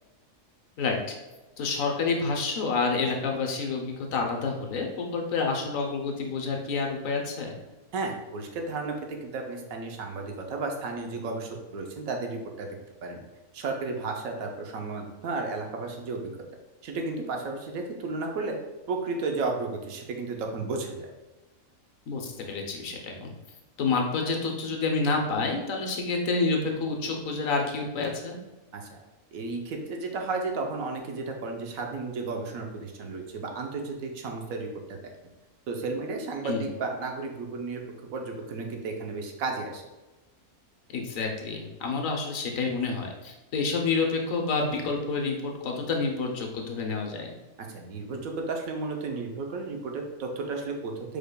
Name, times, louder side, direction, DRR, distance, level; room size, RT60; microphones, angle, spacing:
voice 1, 0.8-1.1 1.6-7.5 22.1-23.3 23.8-28.4 36.4-36.7 40.9-47.3, left 4 dB, 70° left, 1 dB, 1.1 m, -28 dB
voice 2, 7.9-13.2 13.5-16.3 16.8-18.6 18.9-21.1 28.7-29.0 29.3-35.0 35.7-37.8 38.1-39.8 47.6-51.2, right 3 dB, 75° right, 2 dB, 1.1 m, -33 dB
4.9 x 4.6 x 2.2 m, 1.1 s
omnidirectional pair, 1.5 m